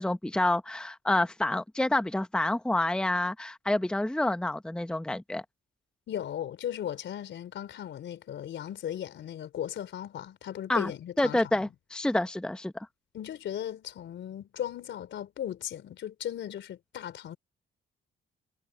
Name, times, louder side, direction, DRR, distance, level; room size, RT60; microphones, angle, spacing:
voice 1, 0.0-5.4 10.7-10.9 11.2-12.7, left 1 dB, 5° left, 0.9 m, -28 dB
voice 2, 6.1-11.7 13.1-17.4, left 10 dB, 70° left, 4.1 m, -37 dB
cardioid pair, 90°, 20 cm